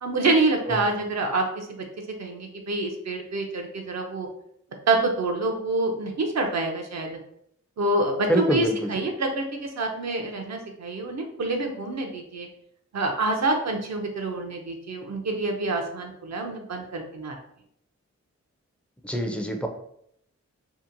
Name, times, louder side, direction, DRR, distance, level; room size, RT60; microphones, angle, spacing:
voice 1, 0.0-1.8 2.2-4.3 4.9-7.2 7.8-12.5 12.9-17.3, right 2 dB, 65° right, 2 dB, 0.5 m, -27 dB
voice 2, 0.7-1.0 8.3-9.0 19.0-19.7, equal, 5° left, 4 dB, 0.4 m, -26 dB
2.8 x 2.1 x 2.6 m, 0.70 s
wide cardioid pair, 65°, 29 cm